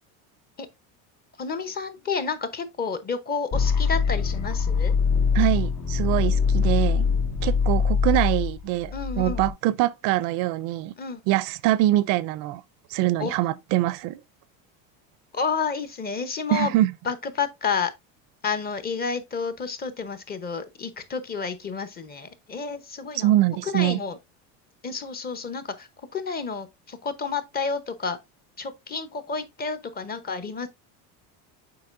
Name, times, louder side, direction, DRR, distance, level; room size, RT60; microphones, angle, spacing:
voice 1, 1.4-4.9 8.9-9.4 11.0-11.2 13.2-13.4 15.3-16.8 17.0-17.9 18.4-23.3 23.6-24.2 24.8-28.2 28.6-30.7, left 5 dB, 25° left, 0.8 m, -30 dB
sound 1, 3.5-9.5, left 5 dB, 65° left, 2.0 m, -23 dB
voice 2, 5.3-7.0 7.4-10.9 11.3-12.6 12.9-14.2 16.5-16.9 23.2-24.0, right 15 dB, 60° right, 0.5 m, -24 dB
7.8 x 5.2 x 2.5 m
cardioid pair, 145°, 38 cm